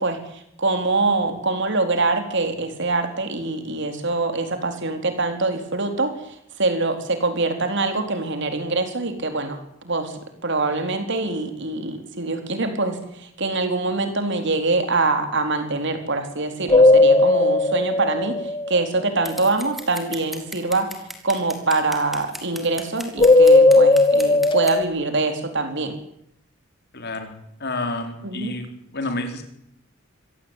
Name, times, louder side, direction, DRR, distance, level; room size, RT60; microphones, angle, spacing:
voice 1, 0.0-9.6 9.8-20.9 21.2-26.0 28.2-28.5, right 3 dB, 60° right, 7 dB, 4.0 m, -24 dB
sound 1, 16.7-19.1 23.2-24.8, left 2 dB, 25° left, 1.9 m, -15 dB
Scissors, 19.3-24.8, equal, ahead, 3.4 m, -37 dB
voice 2, 26.9-28.7 28.9-29.4, left 2 dB, 50° left, 5 dB, 4.3 m, -29 dB
25.0 x 17.5 x 9.2 m, 0.76 s
head